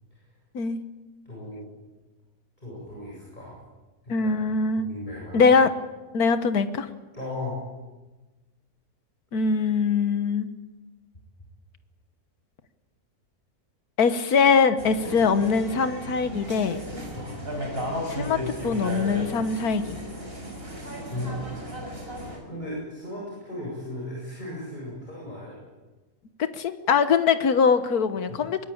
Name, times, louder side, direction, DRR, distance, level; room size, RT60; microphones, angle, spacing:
voice 1, 1.2-1.6 2.6-3.6 4.0-4.3 4.8-5.5 7.1-7.6 17.1-17.4 21.1-21.4 22.5-25.6, left 1 dB, 30° left, -4 dB, 8.0 m, -36 dB
voice 2, 4.1-4.9 5.3-5.7 6.1-6.9 9.3-10.5 14.0-16.8 18.1-20.0 26.6-28.7, left 5 dB, 80° left, 11 dB, 1.8 m, -22 dB
sound 1, 14.8-22.4, equal, 40° right, 6.1 m, -35 dB
23.5 x 21.0 x 8.8 m, 1.2 s
omnidirectional pair, 1.6 m